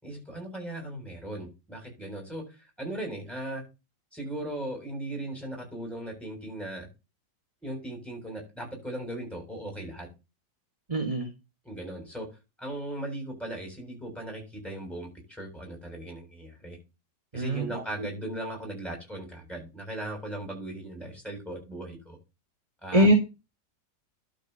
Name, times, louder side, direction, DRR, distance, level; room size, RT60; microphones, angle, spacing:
voice 1, 0.0-3.6 4.1-6.9 7.6-10.1 11.6-12.3 12.6-16.8 17.3-22.2 22.8-23.2, right 1 dB, ahead, 1 dB, 7.1 m, -38 dB
voice 2, 10.9-11.3 17.3-17.8 22.9-23.1, right 1 dB, 20° right, 4 dB, 1.5 m, -23 dB
12.0 x 4.4 x 6.7 m, 0.27 s
omnidirectional pair, 1.9 m